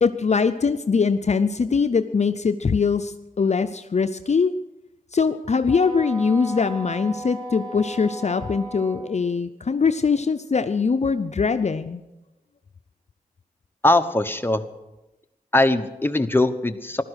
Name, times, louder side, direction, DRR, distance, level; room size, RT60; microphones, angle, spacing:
voice 1, 0.0-4.5 5.1-12.0, left 5 dB, 50° left, 9 dB, 0.6 m, -22 dB
Wind instrument woodwind instrument, 5.7-9.1, right 1 dB, 30° right, 7.0 m, -36 dB
voice 2, 13.8-14.6 15.5-17.0, left 2 dB, 15° left, 7 dB, 1.0 m, -20 dB
15.5 x 12.5 x 6.4 m, 0.99 s
wide cardioid pair, 60°, 15 cm